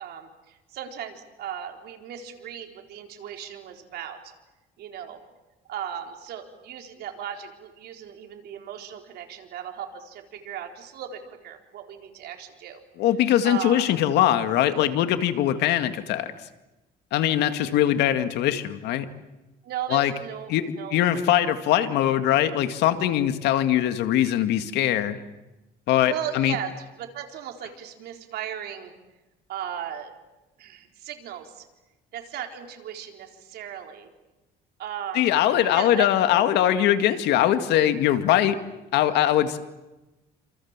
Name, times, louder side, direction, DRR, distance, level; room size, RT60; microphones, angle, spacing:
voice 1, 0.0-4.2 4.8-5.2 5.6-12.8 13.4-13.9 19.6-21.0 21.3-21.4 21.7-21.9 26.1-28.9 29.5-30.1 30.6-31.6 32.1-34.1 34.8-35.3 35.6-36.1, right 9 dB, 70° right, 4 dB, 4.2 m, -36 dB
voice 2, 13.0-16.3 17.1-19.1 19.9-20.1 20.5-25.2 25.9-26.6 35.1-38.6 38.9-39.6, left 12 dB, 85° left, 9 dB, 2.1 m, -22 dB
29.0 x 27.0 x 7.5 m, 1.0 s
cardioid pair, 110°, 17 cm